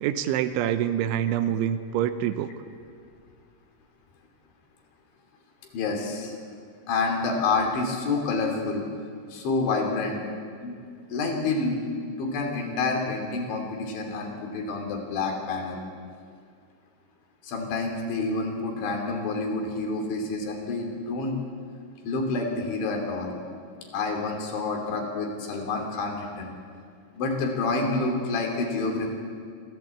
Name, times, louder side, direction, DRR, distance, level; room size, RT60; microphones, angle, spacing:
voice 1, 0.0-2.5, right 10 dB, 85° right, 10 dB, 3.3 m, -26 dB
voice 2, 5.7-6.4 6.9-8.9 9.3-10.2 10.6-10.8 11.1-11.8 12.2-15.8 17.4-21.4 22.1-23.3 23.9-26.5 27.1-29.1, left 3 dB, 75° left, 2 dB, 5.5 m, -28 dB
26.0 x 15.5 x 8.3 m, 2.2 s
omnidirectional pair, 5.4 m